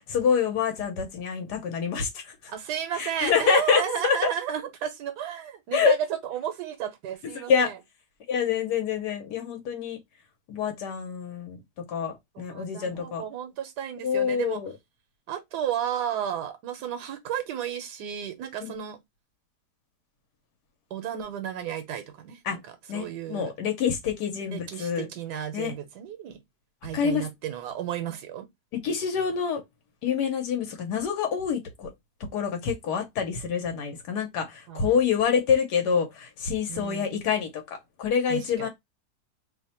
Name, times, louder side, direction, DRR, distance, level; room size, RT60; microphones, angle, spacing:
voice 1, 0.0-2.5 2.9-4.2 5.7-5.9 7.3-7.7 8.3-10.0 10.5-11.6 11.9-13.2 14.0-14.7 18.6-18.7 22.4-22.6 22.9-25.1 25.5-25.7 26.9-27.3 28.8-29.6 30.0-31.9 32.3-38.7, left 7 dB, 85° left, 1.4 m, -26 dB
voice 2, 2.5-7.8 12.3-14.6 15.3-19.0 20.9-23.5 24.5-26.4 26.8-28.5 34.7-34.9 36.7-37.1 38.3-38.7, right 9 dB, 85° right, 1.2 m, -33 dB
3.1 x 2.1 x 4.1 m
omnidirectional pair, 1.7 m